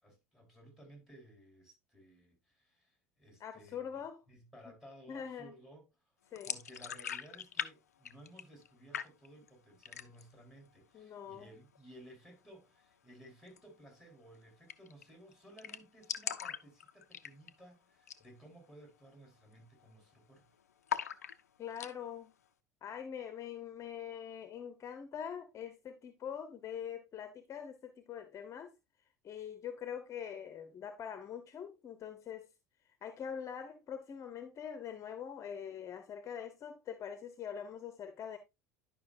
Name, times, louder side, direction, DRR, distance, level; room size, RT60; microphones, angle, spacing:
voice 1, 0.0-4.0 4.3-5.9 6.4-20.5, right 1 dB, 5° right, 4.4 m, -57 dB
voice 2, 3.4-4.2 5.1-5.5 6.3-6.5 10.9-11.5 21.6-22.3 22.8-28.7 29.2-32.5 33.0-38.4, left 8 dB, 40° left, 1.0 m, -43 dB
sound 1, 6.4-7.7 8.0-8.7 8.9-9.5 9.8-10.4 10.7-10.8 11.1-11.8 13.5-13.6 13.9-14.0 14.2-14.3 14.7-15.0 15.3-15.4 15.6-17.6 18.0-18.3 18.6-18.7 19.3-19.5 19.8-20.4 20.9-21.9, left 8 dB, 90° left, 0.5 m, -40 dB
11.0 x 5.4 x 2.6 m
hypercardioid pair, 80°, 8 cm